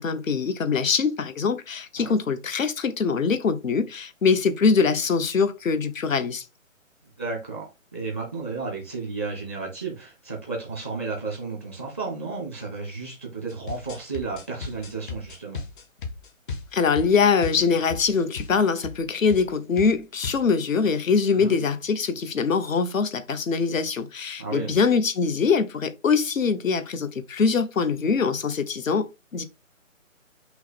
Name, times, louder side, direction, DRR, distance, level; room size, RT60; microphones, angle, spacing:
voice 1, 0.0-6.4 16.7-29.4, left 5 dB, 70° left, 0.9 m, -23 dB
voice 2, 7.2-7.6 7.9-15.6 21.3-21.6 24.4-24.8, right 4 dB, 10° left, 0.5 m, -33 dB
sound 1, 13.5-18.1 18.4-18.5 18.8-19.0 19.3-19.5 19.8-20.5, left 4 dB, 40° left, 1.0 m, -36 dB
5.7 x 2.0 x 4.2 m
figure-of-eight pair, 150°, 40 cm